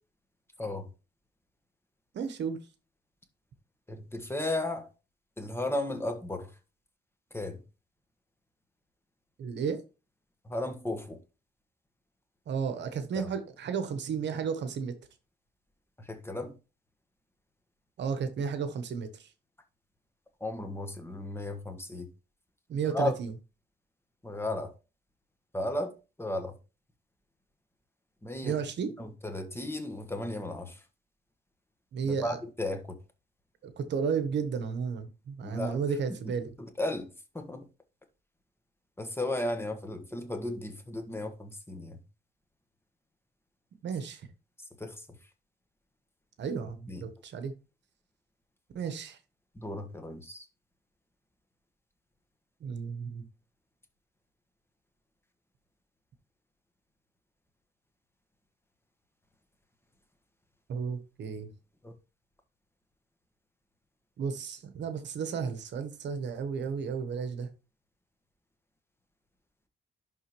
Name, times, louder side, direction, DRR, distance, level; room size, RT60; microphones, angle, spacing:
voice 1, 0.6-0.9 3.9-4.9 5.4-6.5 7.3-7.6 10.4-11.2 13.1-13.3 16.0-16.5 20.4-22.1 22.9-23.1 24.2-24.7 25.5-26.6 28.2-28.6 29.0-30.8 32.0-32.9 35.4-35.8 36.8-37.6 39.0-42.0 44.8-45.2 46.9-47.0 49.5-50.5 61.8-61.9, left 1 dB, 10° left, 1.4 m, -35 dB
voice 2, 2.1-2.6 9.4-9.8 12.5-15.0 18.0-19.3 22.7-23.3 28.4-28.9 31.9-32.4 33.6-36.5 43.8-44.3 46.4-47.5 48.7-49.2 52.6-53.2 60.7-61.5 64.2-67.5, right 6 dB, 65° right, 1.0 m, -33 dB
11.0 x 3.8 x 3.1 m
cardioid pair, 90°, 20 cm